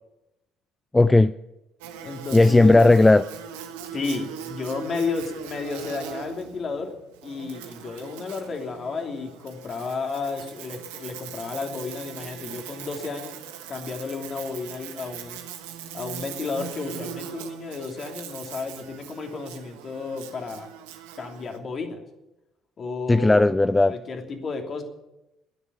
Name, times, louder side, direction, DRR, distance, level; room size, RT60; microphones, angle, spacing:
voice 1, 0.9-1.3 2.3-3.2 23.1-23.9, left 2 dB, 15° left, 0.5 m, -16 dB
Buzz, 1.8-21.6, right 9 dB, 80° right, 1.4 m, -40 dB
voice 2, 2.0-2.9 3.9-6.9 7.2-13.4 13.7-15.4 15.9-20.7 21.2-22.0 22.8-23.5 23.8-24.8, left 4 dB, 45° left, 3.0 m, -32 dB
12.5 x 10.5 x 9.6 m
hypercardioid pair, 55°, 0 cm